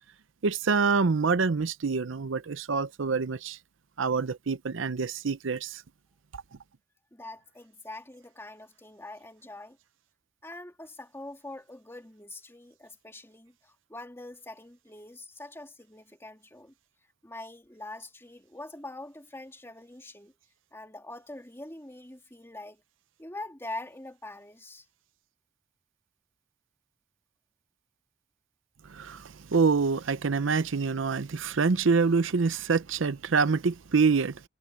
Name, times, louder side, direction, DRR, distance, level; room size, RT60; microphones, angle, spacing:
voice 1, 0.4-3.6 4.0-5.8 6.3-6.4 28.9-34.5, right 5 dB, 75° right, 0.6 m, -26 dB
voice 2, 7.1-9.8 10.4-16.7 17.2-20.3 20.7-22.8 23.2-24.8, left 2 dB, 15° left, 2.9 m, -44 dB
head